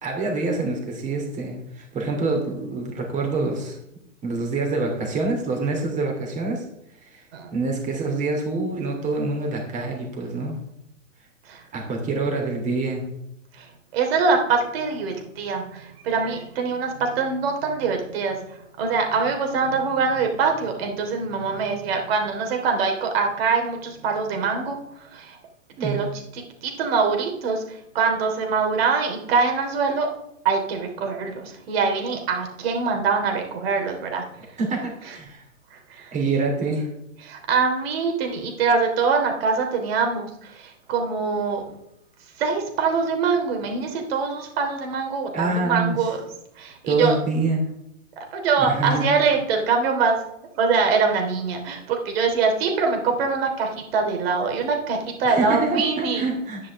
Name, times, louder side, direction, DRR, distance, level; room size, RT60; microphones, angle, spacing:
voice 1, 0.0-3.8 4.2-6.6 7.0-7.2 7.5-10.6 11.7-13.0 25.8-26.0 34.6-35.4 36.1-36.9 45.3-46.0 46.9-47.6 48.6-49.1 55.3-56.6, right 3 dB, 20° right, 1 dB, 3.1 m, -26 dB
voice 2, 13.9-18.4 18.8-24.8 25.1-25.4 25.8-27.6 27.9-30.1 30.4-34.3 35.7-36.1 37.2-41.6 42.4-46.2 46.6-47.1 48.2-50.2 50.6-56.3, right 5 dB, 50° right, 3 dB, 3.2 m, -23 dB
11.0 x 9.8 x 3.6 m, 0.79 s
hypercardioid pair, 140°, 39 cm